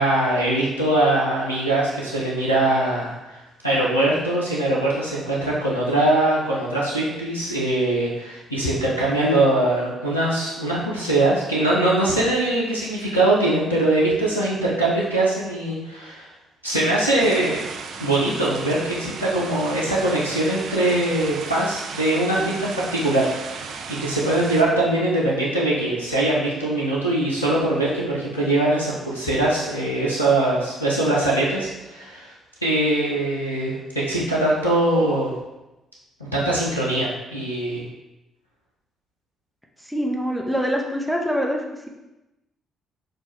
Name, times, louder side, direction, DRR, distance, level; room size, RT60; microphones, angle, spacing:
voice 1, 0.0-16.3 16.6-17.7 18.0-32.3 32.6-35.3 36.2-37.8, right 1 dB, 90° left, -6 dB, 0.5 m, -22 dB
sound 1, 17.2-24.6, right 5 dB, 55° right, 0.3 m, -35 dB
voice 2, 39.8-41.6, equal, ahead, 0 dB, 0.7 m, -24 dB
6.1 x 2.3 x 3.0 m, 1.0 s
figure-of-eight pair, 40°, 0 cm